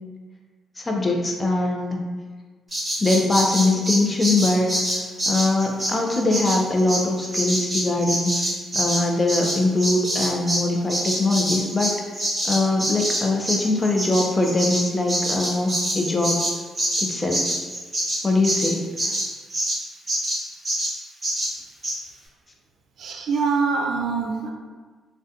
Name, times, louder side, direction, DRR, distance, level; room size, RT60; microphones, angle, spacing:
voice 1, 0.8-2.0 3.0-4.7 5.3-8.4 8.7-12.0 12.4-16.4 17.0-17.4 18.2-19.1, left 2 dB, 25° left, 1 dB, 0.4 m, -22 dB
Bird vocalization bird call bird song, 2.7-10.6 10.9-19.8 20.1-20.4 20.6-20.9 21.2-21.5 21.8-21.9, right 1 dB, 20° right, 0.9 m, -25 dB
voice 2, 23.0-24.5, right 4 dB, 65° right, 2 dB, 0.3 m, -24 dB
2.3 x 2.1 x 2.7 m, 1.4 s
cardioid pair, 90°, 0 cm